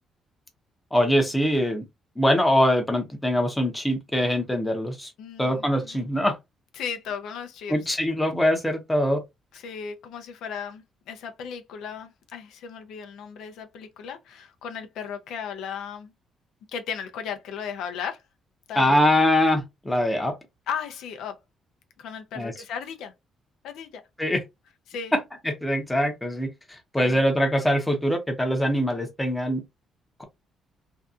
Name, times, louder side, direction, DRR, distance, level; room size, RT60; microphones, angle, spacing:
voice 1, 0.9-1.8 2.2-5.1 5.4-6.4 7.7-9.2 18.8-20.3 22.4-22.5 24.2-24.4 25.1-25.2 25.4-29.6, equal, 5° left, 0.7 m, -23 dB
voice 2, 5.2-6.0 6.8-7.8 9.5-16.1 16.7-18.2 18.7-19.0 20.7-21.3 22.0-23.1 23.6-24.0 24.9-25.1 27.0-27.2, left 7 dB, 85° left, 0.5 m, -36 dB
2.6 x 2.3 x 2.3 m
cardioid pair, 125°, 0 cm